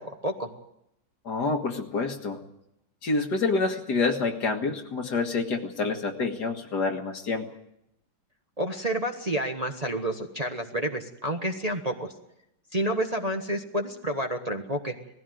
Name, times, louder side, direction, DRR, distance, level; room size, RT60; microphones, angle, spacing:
voice 1, 1.3-2.4 3.0-7.5, left 3 dB, 60° left, 5 dB, 2.2 m, -27 dB
voice 2, 8.6-12.1 12.7-15.0, right 1 dB, 25° right, 3 dB, 1.2 m, -29 dB
19.5 x 15.5 x 9.3 m, 0.80 s
omnidirectional pair, 2.0 m